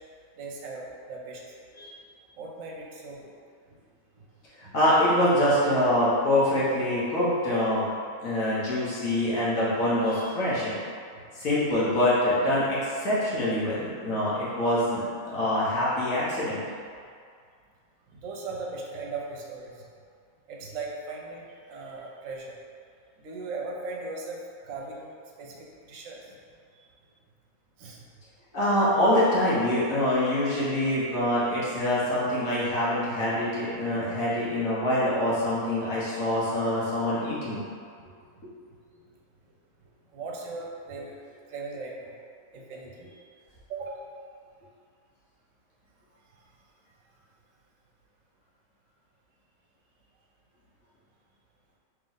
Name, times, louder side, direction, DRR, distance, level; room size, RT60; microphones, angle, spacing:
voice 1, 0.4-1.4 2.4-3.3 3.7-3.8 4.2-4.3 4.6-4.8 11.1-11.2 18.1-19.8 20.5-22.6 23.2-25.1 25.4-26.4 26.7-26.9 27.8-28.1 38.3-38.4 40.1-41.2 41.5-42.2 42.5-43.1 43.7-44.1, right 3 dB, 65° right, -2 dB, 1.0 m, -38 dB
voice 2, 4.7-7.8 8.2-10.8 11.3-16.6 28.5-37.6, left 1 dB, 65° left, -9 dB, 1.4 m, -25 dB
3.3 x 3.0 x 3.8 m, 2.2 s
omnidirectional pair, 1.6 m